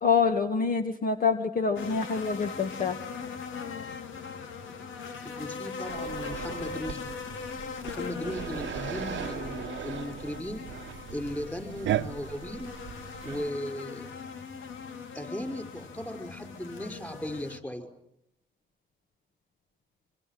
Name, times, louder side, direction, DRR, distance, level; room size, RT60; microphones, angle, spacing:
voice 1, 0.0-3.0, left 5 dB, 45° left, 6 dB, 2.0 m, -26 dB
sound 1, 1.7-17.6, left 5 dB, 75° left, 2.4 m, -40 dB
voice 2, 5.2-7.1 7.8-10.6 11.1-12.7 13.2-14.1 15.1-17.9, left 1 dB, 10° left, 7 dB, 5.7 m, -37 dB
sound 2, 5.9-13.5, right 11 dB, 70° right, 1.0 m, -37 dB
25.5 x 25.0 x 7.8 m, 0.80 s
cardioid pair, 90°, 20 cm